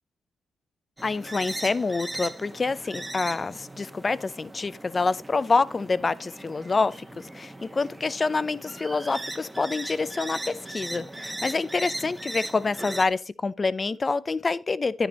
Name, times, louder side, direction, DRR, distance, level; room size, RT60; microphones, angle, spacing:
voice 1, 1.0-15.1, left 4 dB, 30° left, 0.5 m, -27 dB
sound 1, 1.0-13.1, right 1 dB, 10° right, 1.1 m, -38 dB
10.0 x 8.8 x 3.1 m
cardioid pair, 85°, 0 cm